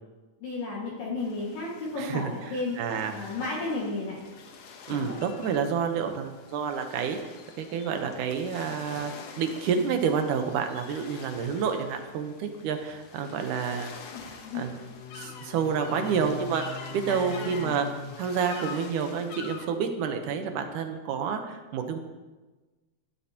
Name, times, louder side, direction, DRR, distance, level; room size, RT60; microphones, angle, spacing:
voice 1, 0.4-2.8 3.1-4.3 4.9-5.2 14.1-14.7 17.1-17.8, left 3 dB, 60° left, -6 dB, 3.4 m, -33 dB
sound 1, 1.2-19.7, left 5 dB, 80° left, 1.4 m, -44 dB
voice 2, 2.0-2.3 2.8-3.1 4.9-7.2 7.6-13.9 14.5-14.7 15.1-16.6 16.9-17.9 18.2-22.0, right 6 dB, 70° right, 6 dB, 2.0 m, -29 dB
16.5 x 12.0 x 2.9 m, 1.2 s
omnidirectional pair, 4.6 m